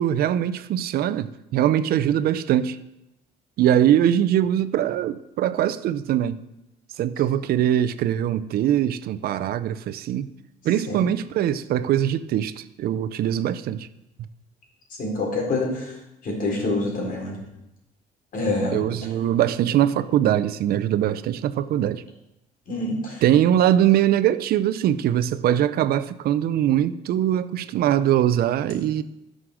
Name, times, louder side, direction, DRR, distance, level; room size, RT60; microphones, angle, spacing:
voice 1, 0.0-2.8 3.6-6.4 7.0-10.3 10.6-13.9 18.7-22.0 23.2-29.0, right 11 dB, 65° right, 0.6 m, -22 dB
voice 2, 15.0-15.9 16.2-17.4 18.3-18.8 22.7-23.2, left 2 dB, 55° left, 3.8 m, -26 dB
11.0 x 6.4 x 6.3 m
cardioid pair, 110°, 17 cm